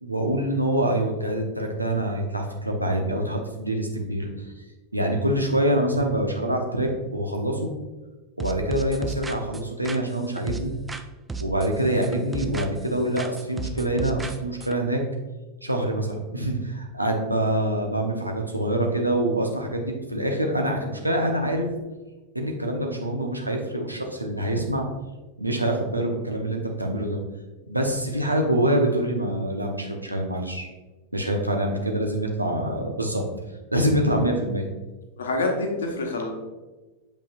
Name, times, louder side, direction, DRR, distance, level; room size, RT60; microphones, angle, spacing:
voice 1, 0.0-4.3 4.9-7.7 8.4-10.7 11.4-15.0 15.6-21.7 22.3-24.9 25.4-27.2 27.7-30.7 31.1-33.2 33.7-34.7, right 1 dB, 85° right, 2 dB, 0.9 m, -25 dB
sound 1, 8.4-11.0 11.3-12.9 13.2-14.8, right 3 dB, 10° right, 0.4 m, -34 dB
voice 2, 35.2-36.3, left 2 dB, 65° left, 2 dB, 1.1 m, -26 dB
7.1 x 5.4 x 2.4 m, 1.2 s
figure-of-eight pair, 90°, 0 cm